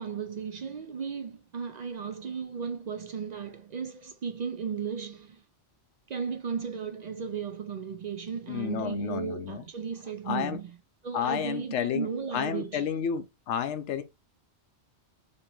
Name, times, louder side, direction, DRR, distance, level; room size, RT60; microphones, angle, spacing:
voice 1, 0.0-5.4 6.1-10.7 11.0-12.9, right 6 dB, 60° right, 0.4 m, -35 dB
voice 2, 8.5-9.6 10.3-10.6 11.1-12.1 12.3-14.0, left 9 dB, 85° left, 0.9 m, -31 dB
2.9 x 2.7 x 4.4 m
omnidirectional pair, 1.2 m